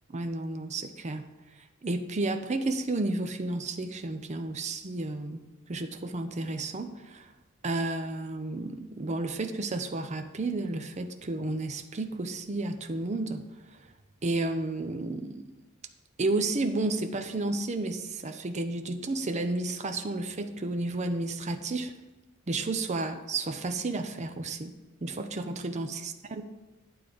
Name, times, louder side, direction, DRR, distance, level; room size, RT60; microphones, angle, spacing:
voice 1, 0.1-1.2 1.8-5.4 5.7-7.3 7.6-13.4 14.2-15.4 16.2-21.9 22.5-26.4, right 2 dB, 35° right, 7 dB, 0.5 m, -32 dB
9.6 x 3.8 x 6.8 m, 1.1 s
head